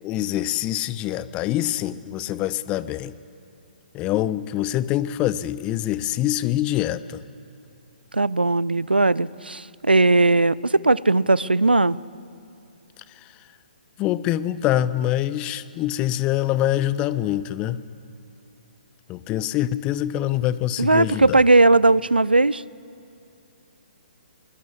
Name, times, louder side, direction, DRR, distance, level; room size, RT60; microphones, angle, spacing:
voice 1, 0.0-3.1 3.9-7.2 14.0-17.8 19.1-21.4, left 13 dB, 20° left, 16 dB, 0.6 m, -25 dB
voice 2, 8.1-12.0 20.8-22.6, right 2 dB, 80° right, 21 dB, 0.5 m, -18 dB
22.0 x 19.5 x 8.4 m, 2.8 s
figure-of-eight pair, 130°, 5 cm